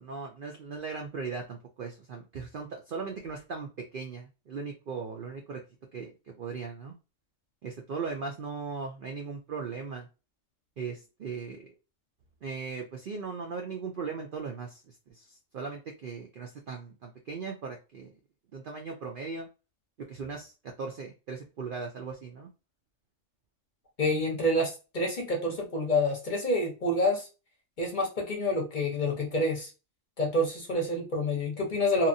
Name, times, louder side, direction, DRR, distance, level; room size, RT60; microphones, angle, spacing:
voice 1, 0.0-5.6 5.9-6.9 7.6-10.1 10.8-11.7 12.4-18.1 18.5-19.5 20.0-22.5, right 5 dB, 65° right, 2 dB, 0.5 m, -38 dB
voice 2, 24.0-27.3 27.8-29.7 30.2-32.1, left 1 dB, 45° left, 0 dB, 0.8 m, -28 dB
2.9 x 2.3 x 2.6 m, 0.31 s
omnidirectional pair, 1.4 m